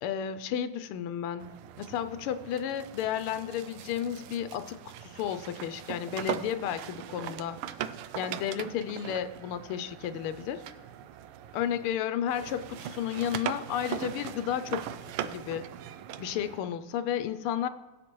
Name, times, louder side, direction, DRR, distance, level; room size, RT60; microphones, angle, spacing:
voice 1, 0.0-1.5 1.8-7.6 8.1-10.6 11.5-14.8 15.2-15.7 16.2-17.7, left 9 dB, 85° left, 12 dB, 1.5 m, -32 dB
sound 1, 1.4-12.0 12.3-16.6, right 10 dB, 90° right, 1.5 m, -40 dB
20.5 x 7.2 x 3.0 m, 1.1 s
omnidirectional pair, 2.4 m